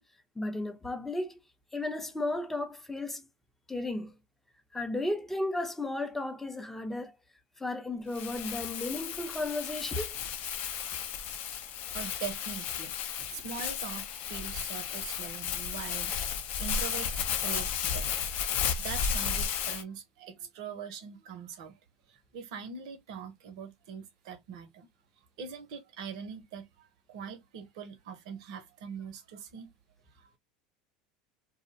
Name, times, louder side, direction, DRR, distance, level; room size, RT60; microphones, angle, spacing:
voice 1, 0.4-1.4 1.7-3.3 3.7-4.2 4.7-7.2 7.6-10.2, left 2 dB, 10° left, 0.5 m, -34 dB
Crumpling crinkling, 8.1-19.8, left 7 dB, 55° left, 0.5 m, -34 dB
voice 2, 11.4-16.2 16.6-18.1 18.8-21.8 22.1-24.9 25.4-29.7 30.2-30.4, right 7 dB, 75° right, 0.6 m, -42 dB
2.5 x 2.0 x 2.6 m
hypercardioid pair, 95°, 3 cm